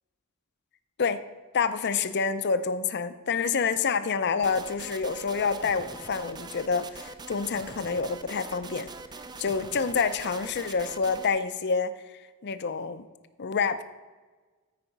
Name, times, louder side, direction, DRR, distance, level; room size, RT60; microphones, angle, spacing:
voice 1, 1.5-8.9 9.4-13.0 13.4-13.8, left 5 dB, 55° left, 12 dB, 0.6 m, -28 dB
sound 1, 4.4-11.3, right 3 dB, 20° right, 0.5 m, -43 dB
13.5 x 4.9 x 5.3 m, 1.3 s
head